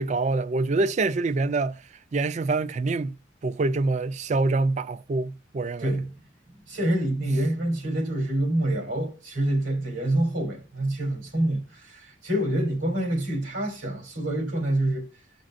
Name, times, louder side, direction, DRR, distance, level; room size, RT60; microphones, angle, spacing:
voice 1, 0.0-1.7 2.1-3.1 3.4-6.0, right 3 dB, 35° right, 0.4 m, -25 dB
voice 2, 6.7-15.1, right 1 dB, 90° right, 3.3 m, -26 dB
13.5 x 5.3 x 2.5 m
head